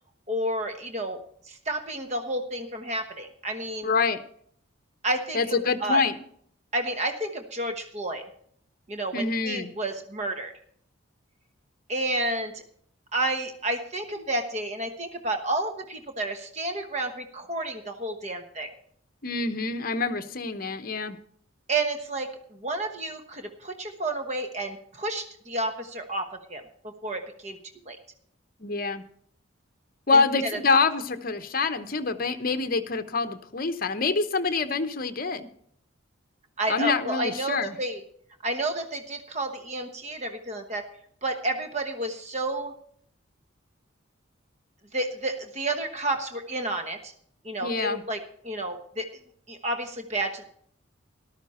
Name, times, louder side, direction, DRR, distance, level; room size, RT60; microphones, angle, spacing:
voice 1, 0.3-3.9 5.0-6.0 6.7-8.2 8.9-10.5 11.9-12.6 13.1-18.7 21.7-26.6 27.0-27.6 27.9-28.0 30.1-30.2 30.5-30.6 36.6-38.0 38.4-40.8 41.2-42.7 44.9-47.1 47.4-49.1 49.5-50.5, right 2 dB, 35° right, 6 dB, 1.1 m, -31 dB
voice 2, 3.8-4.2 5.3-6.2 9.1-9.7 19.2-21.2 28.6-29.0 30.1-35.5 36.7-37.8 47.6-48.0, left 4 dB, 45° left, 10 dB, 0.9 m, -26 dB
13.5 x 12.5 x 4.3 m, 0.63 s
head